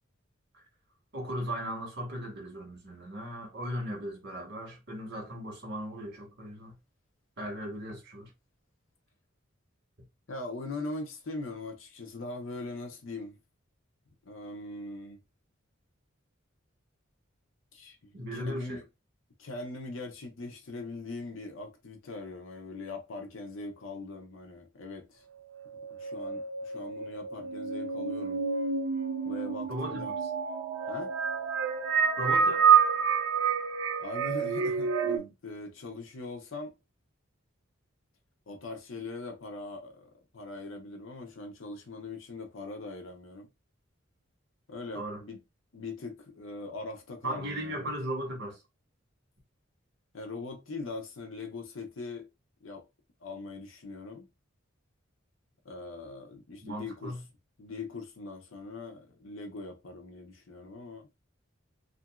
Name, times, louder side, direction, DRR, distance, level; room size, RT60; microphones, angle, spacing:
voice 1, 1.1-6.8 7.4-8.3 18.1-18.8 29.7-30.0 32.2-32.6 44.9-45.2 47.2-48.6 56.6-57.2, equal, 60° right, 1.5 m, -37 dB
voice 2, 10.3-13.4 14.2-15.2 17.7-18.8 19.4-25.2 25.9-28.4 29.3-30.2 30.9-31.1 34.0-36.8 38.5-43.5 44.7-45.4 45.7-47.9 50.1-52.3 52.6-52.8 53.2-54.3 55.6-57.2 57.6-61.1, left 2 dB, 75° left, 0.7 m, -41 dB
sound 1, 25.5-35.2, right 6 dB, 85° right, 0.5 m, -28 dB
2.8 x 2.6 x 2.3 m
head